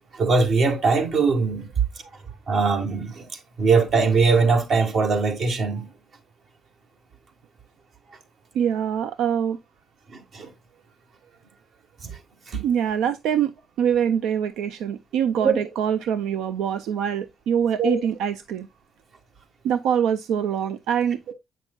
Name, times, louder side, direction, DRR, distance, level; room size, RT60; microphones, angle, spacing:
voice 1, 0.1-1.7 2.5-3.3 3.6-5.9 10.1-10.5 12.0-12.2 12.5-12.6 15.4-15.6 17.8-18.0, right 4 dB, 60° right, 1.7 m, -21 dB
voice 2, 8.5-9.6 12.6-13.5 13.8-18.7 19.6-21.3, right 8 dB, 90° right, 0.3 m, -24 dB
7.9 x 6.0 x 2.3 m
cardioid pair, 90°, 0 cm